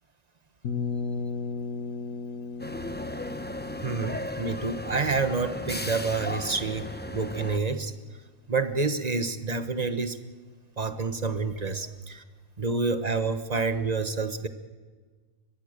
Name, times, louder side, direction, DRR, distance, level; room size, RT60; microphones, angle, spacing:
sound 1, 0.6-6.4, left 4 dB, 75° left, 1.9 m, -36 dB
sound 2, 2.6-7.6, left 1 dB, 10° left, 0.7 m, -36 dB
voice 1, 3.8-6.9 7.1-7.9 8.5-10.2 10.8-12.2 12.6-14.5, right 4 dB, 30° right, 10 dB, 1.2 m, -28 dB
24.0 x 21.5 x 6.7 m, 1.4 s
omnidirectional pair, 1.6 m